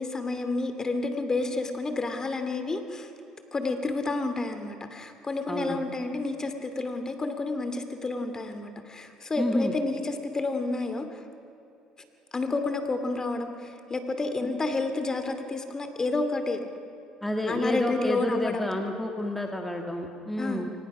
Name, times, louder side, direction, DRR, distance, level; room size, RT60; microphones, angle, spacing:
voice 1, 0.0-3.1 3.5-11.1 12.3-16.6 17.4-18.7 20.4-20.7, left 3 dB, 25° left, 7 dB, 2.6 m, -30 dB
voice 2, 5.5-5.9 9.4-9.7 17.2-20.7, left 1 dB, 5° left, 2 dB, 2.0 m, -29 dB
24.0 x 20.0 x 6.2 m, 2.9 s
supercardioid pair, 75°, 2 cm